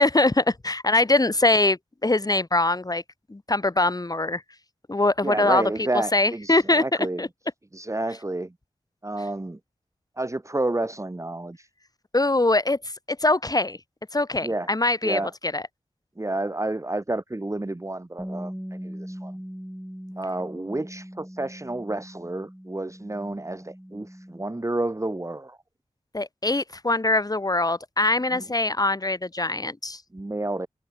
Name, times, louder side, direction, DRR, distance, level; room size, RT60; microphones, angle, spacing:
voice 1, 0.0-3.0 3.3-4.4 4.9-5.6 6.1-6.8 7.2-7.3 12.1-12.8 13.2-13.8 14.1-15.2 15.5-15.6 26.1-30.0, left 2 dB, 30° left, 1.8 m, -22 dB
voice 2, 5.2-7.3 7.7-8.5 9.0-9.6 10.2-11.7 14.4-14.7 15.0-15.3 16.2-19.3 20.2-25.6 28.3-28.4 30.1-30.7, right 2 dB, 25° right, 1.8 m, -30 dB
Bass guitar, 18.2-24.4, equal, 5° right, 6.6 m, -40 dB
cardioid pair, 40°, 12 cm